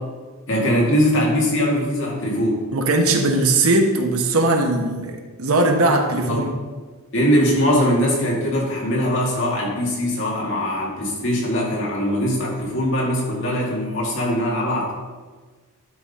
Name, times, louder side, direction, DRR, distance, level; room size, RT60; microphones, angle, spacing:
voice 1, 0.5-2.6 6.3-6.5 7.1-14.9, equal, 60° left, -3 dB, 2.3 m, -21 dB
voice 2, 2.7-6.5, right 2 dB, 75° right, 4 dB, 1.1 m, -19 dB
11.0 x 3.8 x 5.5 m, 1.4 s
head